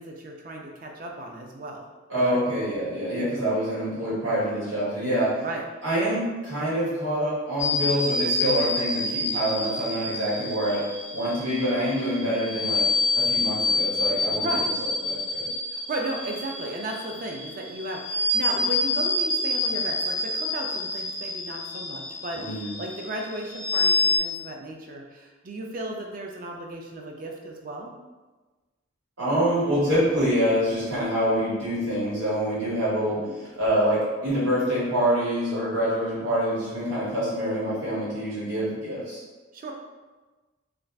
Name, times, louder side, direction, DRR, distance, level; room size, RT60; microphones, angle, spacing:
voice 1, 0.0-1.9 2.2-2.4 5.4-5.6 14.3-14.7 15.7-27.9 33.2-33.3 39.5-39.7, right 1 dB, 40° right, 1 dB, 0.3 m, -35 dB
voice 2, 2.1-5.3 5.8-10.8 11.1-12.8 13.1-14.7 15.0-15.5 22.3-22.7 29.2-39.2, equal, 70° right, -9 dB, 1.4 m, -26 dB
sound 1, 7.6-24.2, left 2 dB, 35° left, 0.4 m, -27 dB
2.5 x 2.3 x 3.2 m, 1.2 s
head